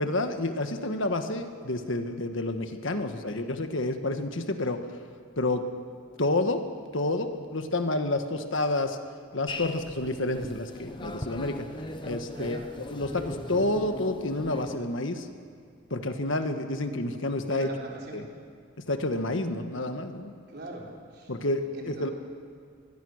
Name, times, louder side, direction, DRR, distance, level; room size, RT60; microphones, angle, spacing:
voice 1, 0.0-4.8 5.4-5.6 6.2-6.6 6.9-9.0 9.3-11.7 12.0-15.3 15.9-17.7 18.1-18.3 18.8-20.3 21.3-22.1, left 2 dB, 60° left, 7 dB, 1.4 m, -29 dB
voice 2, 3.0-3.5 12.3-12.7 17.5-18.2 20.5-21.3 21.7-22.1, right 1 dB, 50° right, -2 dB, 4.3 m, -42 dB
sound 1, 9.5-14.8, left 1 dB, 20° left, 1.0 m, -39 dB
24.0 x 21.0 x 6.5 m, 2.1 s
head